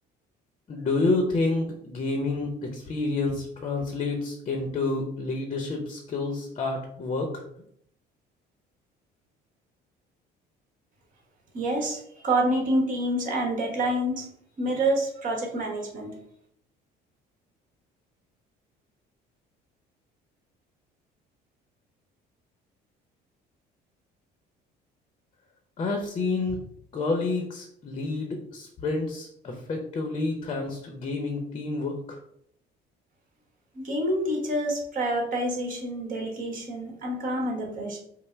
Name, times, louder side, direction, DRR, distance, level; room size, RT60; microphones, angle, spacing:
voice 1, 0.7-7.3 25.8-26.6 26.9-32.0, left 3 dB, 30° left, 3 dB, 0.7 m, -29 dB
voice 2, 11.5-14.3 14.6-16.1 33.7-38.0, right 1 dB, 50° right, 0 dB, 1.5 m, -27 dB
5.2 x 2.1 x 4.5 m, 0.70 s
cardioid pair, 140°, 18 cm